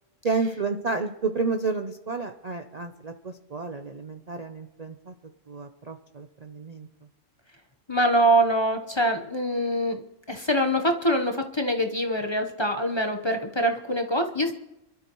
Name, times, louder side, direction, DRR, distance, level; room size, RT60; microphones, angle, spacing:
voice 1, 0.2-5.1 5.5-6.9, right 4 dB, 40° right, 6 dB, 0.6 m, -31 dB
voice 2, 7.9-10.0 10.3-14.5, right 1 dB, 25° left, 4 dB, 1.0 m, -24 dB
27.0 x 12.5 x 3.1 m, 0.91 s
omnidirectional pair, 1.4 m